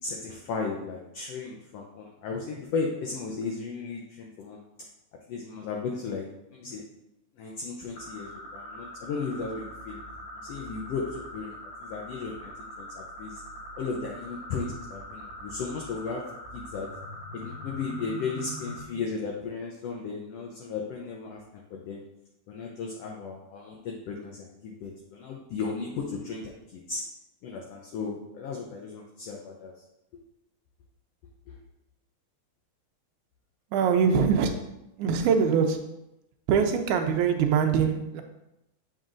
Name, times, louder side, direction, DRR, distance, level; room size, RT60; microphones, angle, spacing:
voice 1, 0.0-4.6 5.3-6.2 6.5-6.8 7.4-10.0 10.4-12.5 12.8-13.4 13.8-16.2 16.5-16.9 17.3-21.4 21.7-22.0 22.5-27.0 27.4-29.7 31.5-31.6, left 4 dB, 75° left, 0 dB, 1.5 m, -35 dB
sound 1, 7.9-18.8, left 1 dB, 55° left, 2.0 m, -42 dB
voice 2, 33.7-34.5 35.0-35.8 36.5-38.2, right 6 dB, 85° right, 4 dB, 2.1 m, -23 dB
7.6 x 5.6 x 2.5 m, 0.87 s
omnidirectional pair, 3.4 m